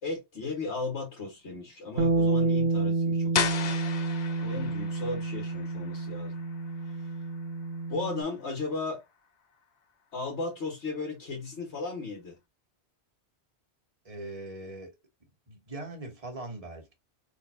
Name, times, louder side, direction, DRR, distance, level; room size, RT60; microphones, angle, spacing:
voice 1, 0.0-3.7 4.4-6.3 7.9-9.0 10.1-12.4, left 3 dB, 85° left, 1.8 m, -35 dB
Bass guitar, 2.0-8.2, right 3 dB, 55° right, 0.8 m, -29 dB
sound 1, 3.3-9.0, left 6 dB, 50° left, 0.6 m, -36 dB
voice 2, 14.0-14.9 15.5-16.9, right 2 dB, 35° right, 1.3 m, -41 dB
4.0 x 3.2 x 2.6 m
omnidirectional pair, 1.1 m